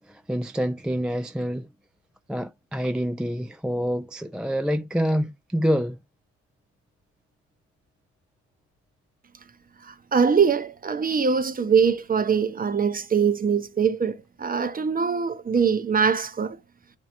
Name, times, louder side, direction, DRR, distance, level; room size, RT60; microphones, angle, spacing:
voice 1, 0.0-1.7 2.3-6.0, equal, 5° right, 0.3 m, -27 dB
voice 2, 9.8-16.6, right 6 dB, 30° right, 0.7 m, -23 dB
9.1 x 4.5 x 2.6 m
cardioid pair, 90°, 30 cm